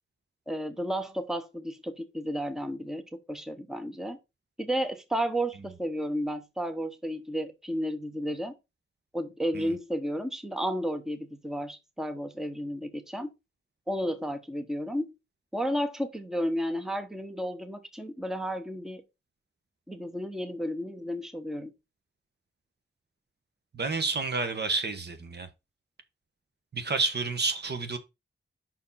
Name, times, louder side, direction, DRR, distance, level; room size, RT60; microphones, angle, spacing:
voice 1, 0.5-4.2 4.6-8.5 9.1-13.3 13.9-15.1 15.5-19.0 19.9-21.7, equal, ahead, 0.9 m, -32 dB
voice 2, 23.7-25.5 26.7-28.0, right 4 dB, 60° right, 1.2 m, -30 dB
5.7 x 4.6 x 5.5 m
wide cardioid pair, 120°, 20 cm